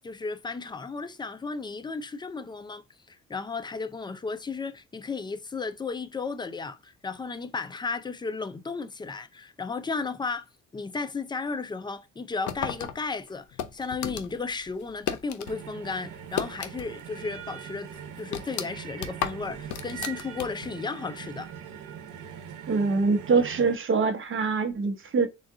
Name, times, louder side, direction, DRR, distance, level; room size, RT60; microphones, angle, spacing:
voice 1, 0.0-2.8 3.1-10.5 10.7-13.5 13.7-17.9 18.2-21.5, left 4 dB, 15° left, 0.4 m, -34 dB
sound 1, 12.5-15.6 15.9-17.1 17.4-17.5 17.9-20.8, left 9 dB, 75° left, 0.6 m, -34 dB
sound 2, 15.5-23.8, right 8 dB, 85° right, 0.8 m, -41 dB
voice 2, 22.7-25.3, right 4 dB, 40° right, 0.8 m, -24 dB
3.8 x 2.3 x 3.6 m
cardioid pair, 90°, 30 cm